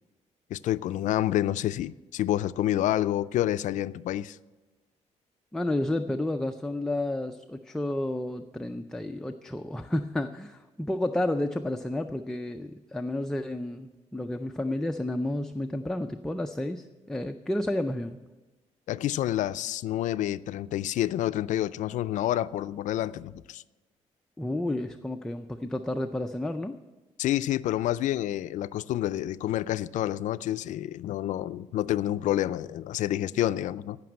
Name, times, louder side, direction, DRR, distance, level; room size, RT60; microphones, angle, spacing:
voice 1, 0.5-4.4 18.9-23.6 27.2-34.0, left 13 dB, 80° left, 0.4 m, -28 dB
voice 2, 5.5-18.2 24.4-26.8, left 1 dB, 5° left, 0.4 m, -31 dB
15.5 x 6.0 x 8.8 m
cardioid pair, 160°, 12 cm